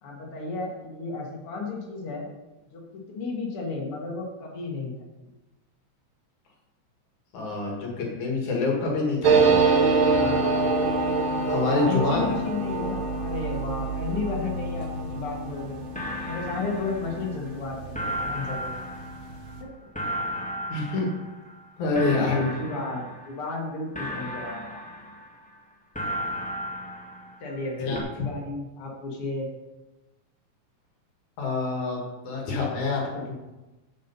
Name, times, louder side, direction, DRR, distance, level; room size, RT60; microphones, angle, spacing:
voice 1, 0.0-2.3 2.7-5.0 10.1-10.7 11.7-16.0 16.2-18.9 21.9-24.8 27.4-29.5, left 3 dB, 50° left, -2 dB, 2.8 m, -33 dB
voice 2, 7.3-9.6 11.5-12.3 20.7-21.1 21.8-22.4 27.9-28.0 31.4-33.3, left 3 dB, 75° left, -1 dB, 3.3 m, -27 dB
sound 1, 9.2-18.4 18.7-18.8 19.0-19.6, right 4 dB, 55° right, 1.6 m, -25 dB
sound 2, 15.5-15.6 15.9-17.6 17.9-21.7 21.9-23.6 23.9-25.6 25.9-27.7 27.9-28.0, equal, 5° left, 1.3 m, -35 dB
9.0 x 7.5 x 5.5 m, 1.1 s
omnidirectional pair, 3.4 m